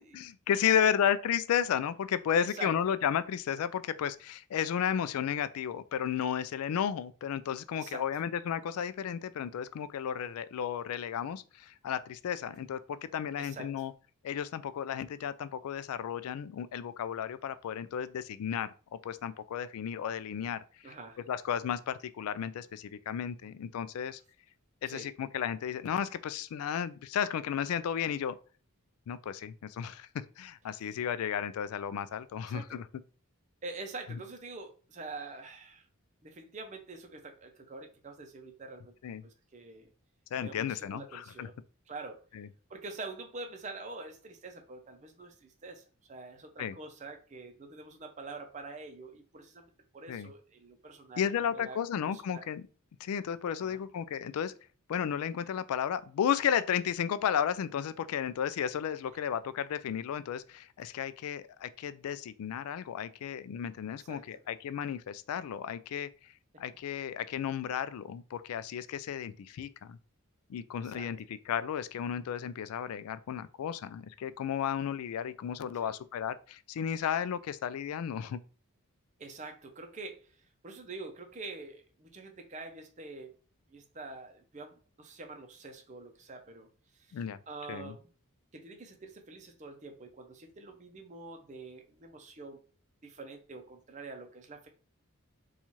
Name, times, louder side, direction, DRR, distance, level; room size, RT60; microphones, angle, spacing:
voice 1, 0.1-13.9 14.2-20.9 21.3-24.2 24.8-28.4 29.1-30.1 30.4-32.8 39.0-39.2 40.3-41.5 42.3-42.5 46.6-46.7 50.1-50.3 51.2-52.7 53.0-54.5 54.9-66.1 66.6-70.0 70.5-78.4 87.1-87.4 87.7-87.9, left 8 dB, 80° left, 0.3 m, -33 dB
voice 2, 2.4-2.8 7.8-8.1 13.4-13.8 20.8-21.2 24.9-25.1 30.9-31.0 32.5-32.8 33.6-35.8 36.2-38.9 39.2-39.9 40.4-41.6 41.9-42.2 42.7-52.5 53.5-53.8 64.0-64.3 70.8-71.1 75.8-75.9 79.2-80.3 80.6-83.3 83.7-86.7 87.0-87.2 87.5-88.1 88.5-92.6 93.0-94.7, right 3 dB, 30° right, 0.5 m, -46 dB
4.1 x 2.4 x 3.0 m
head